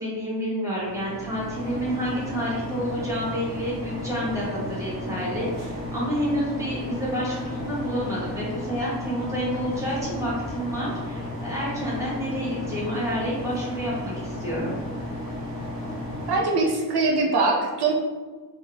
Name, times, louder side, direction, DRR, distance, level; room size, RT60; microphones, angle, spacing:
voice 1, 0.0-14.7, equal, 10° right, -8 dB, 1.2 m, -29 dB
sound 1, 0.7-16.4, left 1 dB, 25° right, 1.5 m, -34 dB
voice 2, 16.3-17.9, right 3 dB, 75° right, 0 dB, 0.6 m, -22 dB
3.9 x 2.3 x 2.5 m, 1.4 s
wide cardioid pair, 130°, 40 cm